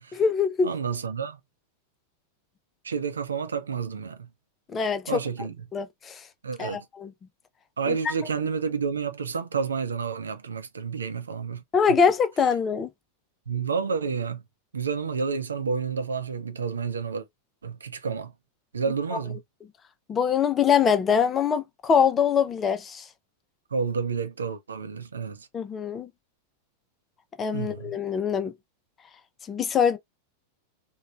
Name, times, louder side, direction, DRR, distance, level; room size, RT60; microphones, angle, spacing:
voice 1, 0.1-0.7 4.7-5.2 5.7-6.2 6.6-7.1 7.9-8.0 11.7-12.9 20.1-23.0 25.5-26.1 27.4-28.5 29.5-30.0, left 6 dB, 20° left, 0.4 m, -23 dB
voice 2, 0.6-1.4 2.8-4.3 5.1-5.6 6.4-6.8 7.8-11.6 13.5-14.4 14.7-17.3 17.6-18.3 18.7-19.4 23.7-25.5 27.5-28.0, right 5 dB, 70° right, 0.6 m, -30 dB
3.0 x 2.2 x 2.4 m
figure-of-eight pair, 90°, 0 cm